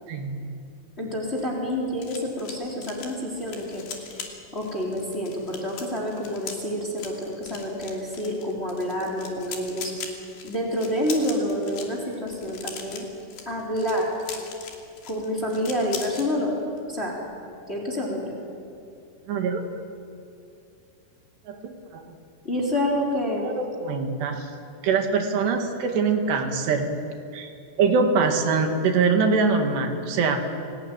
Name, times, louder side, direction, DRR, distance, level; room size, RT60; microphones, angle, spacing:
voice 1, 0.1-0.4 19.3-19.7 21.5-22.2 23.4-24.5 24.8-26.9 27.3-27.5 27.8-30.4, right 4 dB, 85° right, 4 dB, 4.3 m, -23 dB
voice 2, 1.0-4.2 4.5-9.9 10.4-13.1 13.5-14.1 15.1-16.5 16.9-17.2 17.7-18.4 22.4-23.6, equal, 15° left, -2 dB, 3.7 m, -28 dB
sound 1, 1.1-16.3 16.6-16.9 17.1-17.4, left 6 dB, 80° left, 4.8 m, -41 dB
30.0 x 18.5 x 9.3 m, 2.6 s
omnidirectional pair, 4.7 m